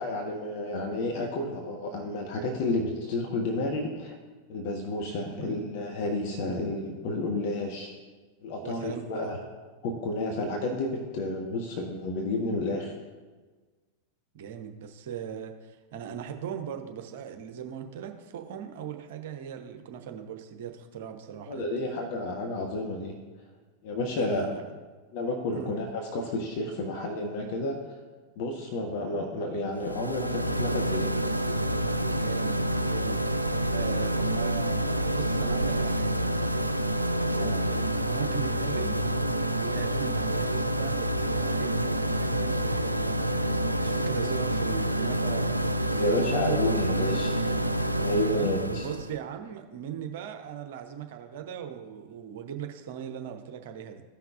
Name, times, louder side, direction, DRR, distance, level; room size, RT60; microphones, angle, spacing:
voice 1, 0.0-4.2 4.5-7.9 8.4-9.4 9.8-12.9 21.5-23.1 23.8-24.5 25.1-27.8 28.4-31.1 37.3-37.6 46.0-47.6 48.0-48.9, left 2 dB, 50° left, 1 dB, 1.0 m, -31 dB
voice 2, 5.3-5.6 8.6-9.3 10.3-10.6 14.3-21.6 24.2-24.7 25.5-25.8 32.1-32.6 32.9-33.2 33.7-36.3 37.4-39.0 39.6-41.7 42.0-43.3 43.8-46.9 48.3-54.0, right 8 dB, 55° right, 5 dB, 0.8 m, -39 dB
sound 1, 29.8-49.2, right 1 dB, 90° right, 0.3 m, -28 dB
14.5 x 5.8 x 2.4 m, 1.3 s
figure-of-eight pair, 90°, 0 cm